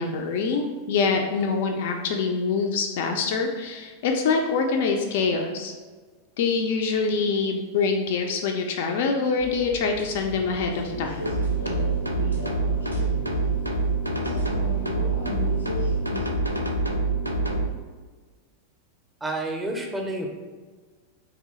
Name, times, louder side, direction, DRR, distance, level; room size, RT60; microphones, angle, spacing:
voice 1, 0.0-5.7 6.4-11.2, left 4 dB, 55° left, 3 dB, 0.3 m, -25 dB
sound 1, 9.4-16.3, left 1 dB, 90° left, 0.7 m, -35 dB
sound 2, 11.2-17.7, right 3 dB, 85° right, 0.3 m, -26 dB
voice 2, 19.2-20.3, right 1 dB, 10° right, 2 dB, 0.5 m, -29 dB
3.2 x 2.8 x 3.0 m, 1.4 s
figure-of-eight pair, 90°, 0 cm